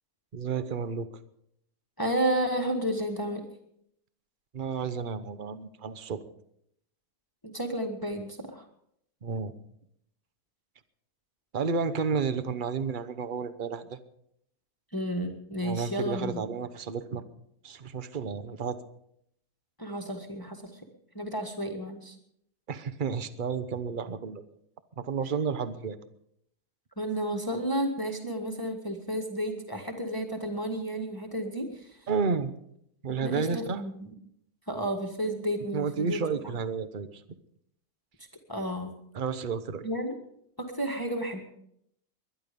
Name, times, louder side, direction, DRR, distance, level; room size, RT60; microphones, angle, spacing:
voice 1, 0.3-1.1 4.5-6.2 9.2-9.5 11.5-14.0 15.6-17.2 17.6-18.8 22.7-24.4 25.0-26.0 32.1-32.5 33.0-33.8 35.7-37.2 39.1-39.9, right 5 dB, 40° right, 12 dB, 1.0 m, -31 dB
voice 2, 2.0-3.4 7.4-8.6 14.9-16.4 19.8-20.7 21.1-22.1 27.0-31.7 33.2-34.1 34.7-36.5 38.5-38.9 39.8-40.1 40.6-41.4, right 1 dB, 15° left, 3 dB, 1.7 m, -32 dB
22.0 x 11.0 x 5.3 m, 0.73 s
omnidirectional pair, 1.5 m